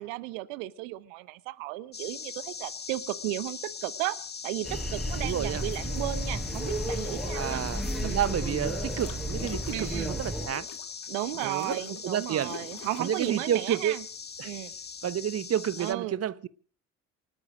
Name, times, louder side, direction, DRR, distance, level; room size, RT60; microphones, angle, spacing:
voice 1, 0.0-4.2 4.4-7.6 8.0-8.2 9.7-10.1 11.1-14.0 14.4-14.7 15.8-16.2, right 18 dB, 65° right, 0.9 m, -34 dB
sound 1, 1.9-15.9, left 6 dB, 25° left, 1.2 m, -41 dB
sound 2, 4.6-10.5, equal, ahead, 5.4 m, -33 dB
sound 3, 4.8-5.5 7.4-8.4 8.7-13.4, left 7 dB, 50° left, 2.6 m, -46 dB
voice 2, 5.2-5.6 7.3-10.7 11.4-11.8 12.0-12.5 13.0-14.0 14.4-14.5 15.0-16.5, right 10 dB, 40° right, 1.0 m, -30 dB
28.5 x 9.9 x 5.0 m
figure-of-eight pair, 45°, 39 cm